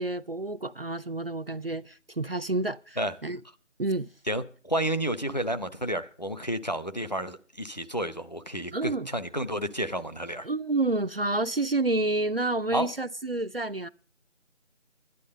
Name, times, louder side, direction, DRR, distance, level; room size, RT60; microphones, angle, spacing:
voice 1, 0.0-3.4 3.8-4.1 8.7-9.1 10.4-13.9, right 2 dB, 50° right, 0.5 m, -29 dB
voice 2, 4.3-10.5 12.7-12.9, right 1 dB, 35° left, 0.8 m, -31 dB
12.0 x 11.0 x 5.2 m
figure-of-eight pair, 175°, 37 cm